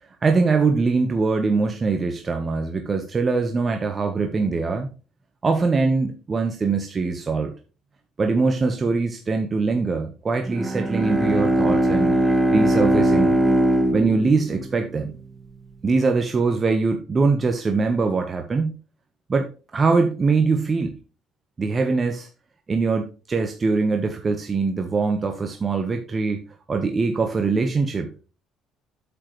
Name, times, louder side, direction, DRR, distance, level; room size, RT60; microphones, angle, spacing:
voice 1, 0.2-4.9 5.4-7.5 8.2-13.3 13.9-15.1 15.8-18.8 19.3-20.9 21.6-22.3 22.7-26.4 26.7-28.1, right 4 dB, 35° right, 5 dB, 1.3 m, -22 dB
Bowed string instrument, 10.4-15.2, right 1 dB, 5° right, 1.7 m, -20 dB
8.5 x 7.7 x 3.2 m, 0.34 s
supercardioid pair, 70°, 0 cm